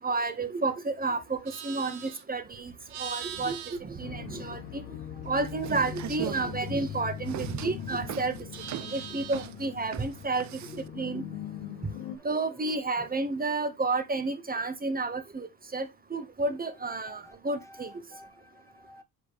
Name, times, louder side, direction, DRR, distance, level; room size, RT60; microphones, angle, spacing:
voice 1, 0.0-2.7 3.0-5.0 5.2-8.5 8.8-11.2 11.8-11.9 12.2-17.9, right 3 dB, 20° right, 1.5 m, -31 dB
Livestock farm animals working animals, 1.2-4.9 5.2-7.8 8.1-9.7, right 9 dB, 55° right, 1.4 m, -44 dB
sound 1, 4.0-12.2, left 9 dB, 80° left, 1.7 m, -40 dB
sound 2, 5.5-10.9, right 12 dB, 40° right, 0.6 m, -40 dB
voice 2, 11.8-12.3 12.5-13.2 17.1-19.0, left 1 dB, 5° left, 1.7 m, -54 dB
7.7 x 5.0 x 3.3 m
supercardioid pair, 75°, 45 cm